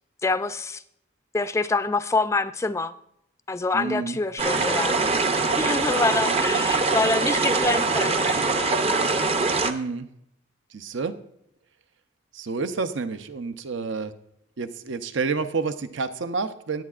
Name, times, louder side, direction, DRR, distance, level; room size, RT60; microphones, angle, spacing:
voice 1, 0.2-0.8 1.3-2.9 3.5-5.1 5.5-8.6, left 3 dB, 15° left, 12 dB, 0.3 m, -26 dB
voice 2, 3.7-4.2 9.6-10.1 10.7-11.1 12.3-14.1 14.6-16.8, right 4 dB, 70° right, 10 dB, 0.6 m, -29 dB
sound 1, 4.4-9.7, right 3 dB, 30° right, 0.6 m, -23 dB
19.5 x 8.5 x 2.4 m, 0.75 s
head